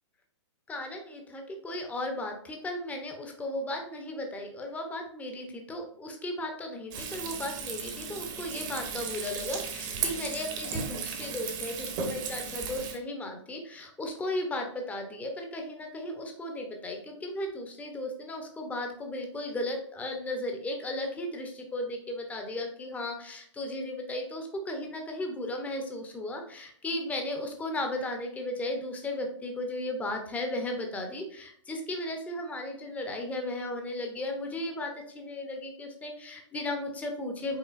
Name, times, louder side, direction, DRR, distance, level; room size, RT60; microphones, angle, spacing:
voice 1, 0.7-37.6, left 1 dB, 10° left, 3 dB, 0.8 m, -35 dB
Frying (food), 6.9-13.0, right 6 dB, 40° right, 1.0 m, -36 dB
5.6 x 3.7 x 2.5 m, 0.64 s
hypercardioid pair, 125°, 16 cm